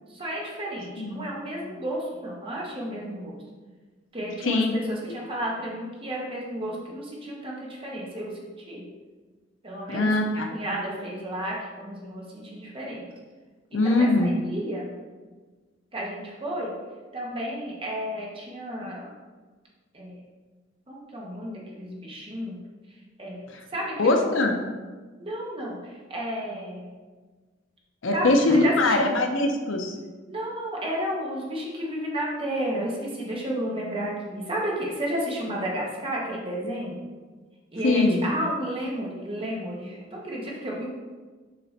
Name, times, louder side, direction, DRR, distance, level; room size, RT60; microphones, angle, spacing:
voice 1, 0.1-3.4 4.1-8.3 8.7-8.8 9.6-13.0 13.7-14.9 15.9-16.7 17.1-19.1 19.9-20.2 20.9-22.6 23.2-23.4 23.7-24.2 25.2-26.9 28.1-29.1 30.3-37.0 37.7-40.9, equal, 30° right, -3 dB, 1.3 m, -32 dB
voice 2, 4.4-4.7 9.9-10.5 13.7-14.3 24.0-24.6 28.0-29.9 37.8-38.2, left 2 dB, 85° left, 4 dB, 0.7 m, -22 dB
6.7 x 3.3 x 4.2 m, 1.4 s
head